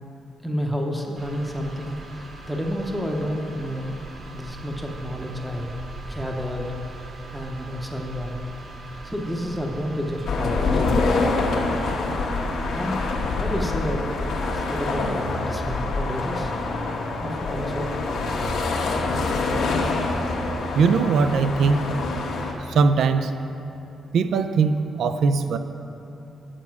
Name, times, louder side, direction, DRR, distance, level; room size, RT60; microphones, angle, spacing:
voice 1, 0.4-4.0 4.3-5.7 6.1-8.4 9.0-11.2 12.7-13.0 13.4-14.1 14.5-16.5 17.2-18.0, equal, ahead, 0 dB, 0.7 m, -30 dB
sound 1, 1.2-10.8, right 2 dB, 40° right, 0.9 m, -40 dB
sound 2, 10.3-22.5, left 3 dB, 80° left, 1.2 m, -25 dB
voice 2, 20.7-22.0 22.7-23.3 24.1-25.6, right 5 dB, 70° right, 10 dB, 0.4 m, -20 dB
8.2 x 7.5 x 5.9 m, 2.8 s
cardioid pair, 145°, 0 cm